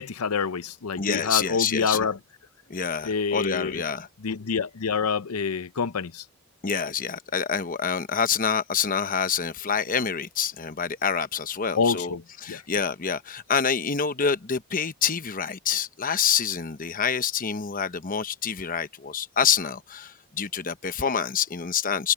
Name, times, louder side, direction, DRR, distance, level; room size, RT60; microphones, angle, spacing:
voice 1, 0.0-2.2 3.0-3.8 4.2-6.2 11.8-12.2 12.5-12.6, left 5 dB, 85° left, 0.7 m, -27 dB
voice 2, 1.0-2.0 2.7-4.1 6.6-12.1 12.4-22.1, left 6 dB, 40° left, 0.9 m, -27 dB
head